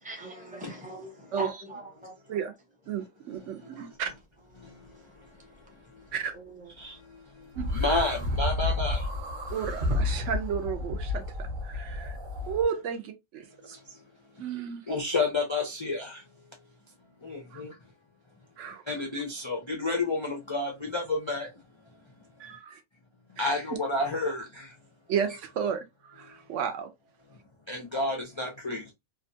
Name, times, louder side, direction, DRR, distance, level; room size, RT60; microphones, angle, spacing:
voice 1, 0.0-1.1 1.4-2.1 6.3-6.7, right 2 dB, 10° right, 0.6 m, -40 dB
voice 2, 2.9-4.1 6.1-6.3 7.6-7.7 9.5-12.2 12.5-13.7 14.4-14.8 17.5-17.6 18.6-18.8 22.4-22.8 23.4-23.6 25.1-26.9, right 7 dB, 70° right, 0.9 m, -33 dB
sound 1, 7.5-12.7, left 2 dB, 45° right, 0.9 m, -31 dB
voice 3, 7.8-9.0 14.9-16.1 17.2-17.7 18.9-21.5 23.4-24.4 27.7-28.9, left 2 dB, 50° left, 0.3 m, -29 dB
2.8 x 2.3 x 2.6 m
omnidirectional pair, 1.4 m